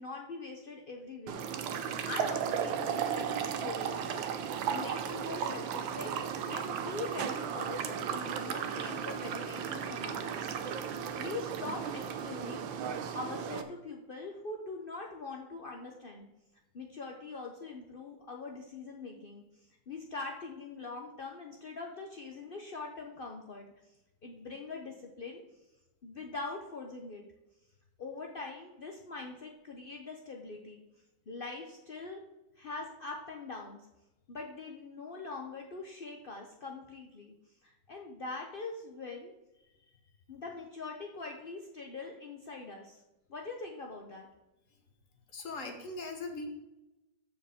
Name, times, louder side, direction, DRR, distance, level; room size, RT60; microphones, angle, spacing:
voice 1, 0.0-1.5 2.0-6.1 6.5-10.8 11.2-12.6 13.1-16.3 16.7-19.4 19.9-23.7 24.2-25.4 26.0-27.2 28.0-30.8 31.3-32.2 32.6-33.9 34.3-37.3 37.6-39.3 40.3-43.0 43.3-44.3, left 3 dB, 75° left, 1 dB, 0.5 m, -43 dB
sound 1, 1.3-13.6, right 8 dB, 85° right, 1.5 m, -35 dB
voice 2, 45.3-46.5, left 3 dB, 45° left, 4 dB, 1.4 m, -40 dB
14.0 x 4.9 x 3.6 m, 1.0 s
omnidirectional pair, 2.1 m